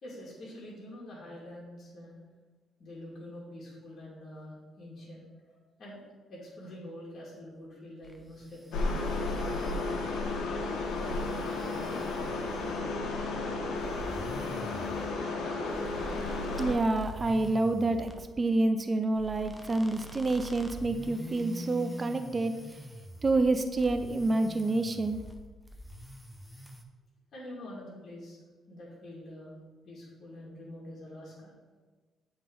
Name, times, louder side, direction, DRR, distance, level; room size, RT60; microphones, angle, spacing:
voice 1, 0.0-2.2 2.8-6.0 6.3-9.8 27.3-28.4 28.7-29.6 29.8-31.5, left 1 dB, 50° left, -6 dB, 2.3 m, -46 dB
sound 1, 8.0-12.9 13.8-18.2 19.2-23.5 23.8-25.4 25.7-26.8, equal, ahead, 0.7 m, -45 dB
sound 2, 8.7-16.7, left 3 dB, 85° left, 1.2 m, -33 dB
voice 2, 16.6-18.1 18.4-22.6 23.2-25.2, right 2 dB, 30° right, 8 dB, 0.5 m, -28 dB
7.5 x 3.7 x 5.4 m, 1.3 s
cardioid pair, 90°, 0 cm